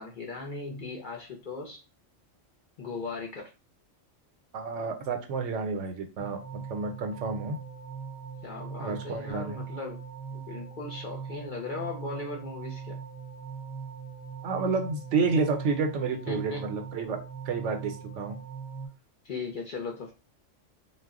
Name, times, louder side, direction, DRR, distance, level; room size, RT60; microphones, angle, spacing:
voice 1, 0.0-1.8 2.8-3.4 8.4-10.0 10.3-13.0 16.3-16.7 19.2-20.1, left 3 dB, 55° left, 0 dB, 0.6 m, -37 dB
voice 2, 4.5-6.4 6.7-7.6 8.8-9.6 14.4-17.2 17.5-18.4, right 4 dB, 75° right, 5 dB, 0.9 m, -30 dB
sound 1, 6.2-18.9, right 6 dB, 5° right, 0.4 m, -41 dB
2.3 x 2.1 x 3.5 m, 0.30 s
omnidirectional pair, 1.3 m